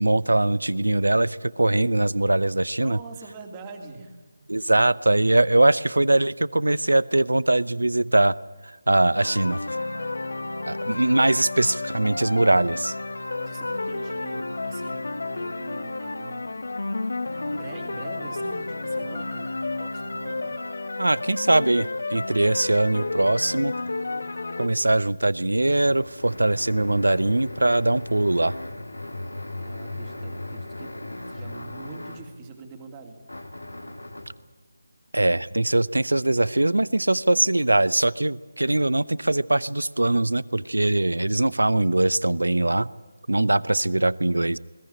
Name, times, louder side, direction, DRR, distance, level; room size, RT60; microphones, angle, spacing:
voice 1, 0.0-3.0 4.5-8.4 8.6-9.6 10.6-12.9 21.0-23.7 24.6-28.5 35.1-42.9 43.3-44.6, right 2 dB, 80° right, 21 dB, 0.7 m, -21 dB
voice 2, 2.8-4.2 13.2-16.5 17.5-19.5 19.7-20.6 29.6-30.9 31.3-33.2, right 4 dB, 20° right, 3 dB, 2.8 m, -43 dB
sound 1, 9.1-24.7, left 2 dB, 70° left, 1.6 m, -31 dB
sound 2, 25.2-32.4 33.3-34.4, left 2 dB, 85° left, 2.9 m, -37 dB
21.0 x 17.5 x 10.0 m, 1.3 s
figure-of-eight pair, 155°, 0 cm